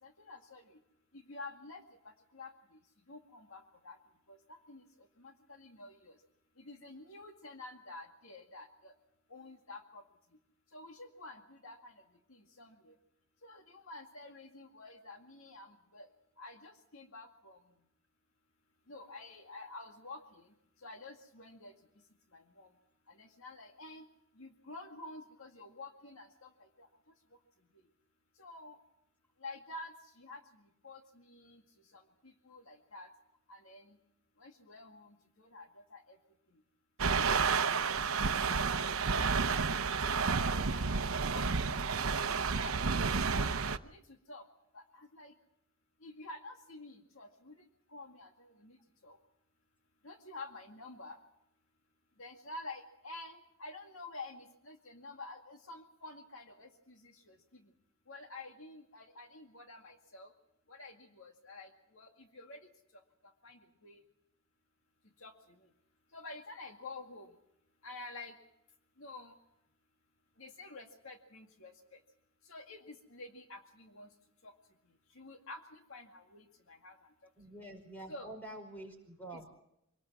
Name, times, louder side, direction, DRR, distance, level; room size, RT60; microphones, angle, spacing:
voice 1, 0.0-0.7 1.1-2.5 3.1-4.0 4.3-4.8 5.2-6.2 6.6-8.9 9.3-10.0 10.7-11.9 12.3-12.9 13.4-16.1 16.4-17.6 18.9-20.4 20.8-21.7 22.3-22.7 23.1-24.1 24.4-26.9 28.4-28.8 29.4-30.4 30.8-31.6 31.9-32.0 32.5-33.1 33.5-34.0 34.4-36.2 37.0-38.1 38.6-42.2 42.5-43.5 43.8-44.0 44.3-44.4 44.7-45.3 46.0-47.5 47.9-48.8 49.0-49.2 50.0-51.2 52.2-57.6 58.1-60.3 60.7-62.6 63.4-64.0 65.2-65.3 66.1-67.3 67.8-68.3 69.0-69.4 70.4-71.7 72.5-74.1 74.4-74.5 75.2-77.0 78.1-78.3 79.3-79.4, left 2 dB, 75° left, 4 dB, 2.1 m, -49 dB
sound 1, 37.0-43.8, right 5 dB, 80° right, 0.8 m, -31 dB
voice 2, 77.4-79.5, right 1 dB, 10° left, 4 dB, 5.2 m, -47 dB
25.5 x 19.0 x 6.2 m, 0.78 s
head